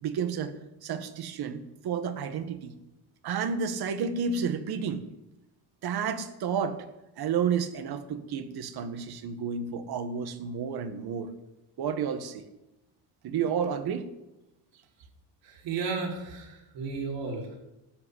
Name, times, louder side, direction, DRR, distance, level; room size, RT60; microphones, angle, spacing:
voice 1, 0.0-0.5 0.8-2.8 3.2-5.0 5.8-6.8 7.2-11.3 11.8-12.4 13.2-14.1, right 6 dB, 55° right, 10 dB, 1.7 m, -31 dB
voice 2, 15.4-17.6, right 4 dB, 75° right, -1 dB, 5.4 m, -34 dB
13.5 x 7.9 x 9.9 m, 0.96 s
cardioid pair, 120°, 44 cm